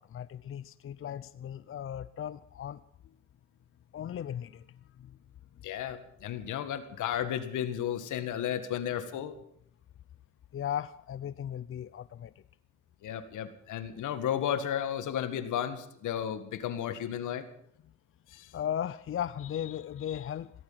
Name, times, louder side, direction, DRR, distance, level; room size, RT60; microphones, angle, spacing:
voice 1, 0.0-2.8 3.9-5.2 10.5-12.3 18.5-20.5, left 10 dB, 45° left, 16 dB, 0.6 m, -37 dB
voice 2, 5.6-9.3 13.0-17.5 18.3-18.5, left 9 dB, 80° left, 11 dB, 1.9 m, -33 dB
16.5 x 14.0 x 5.8 m, 0.70 s
cardioid pair, 90°, 30 cm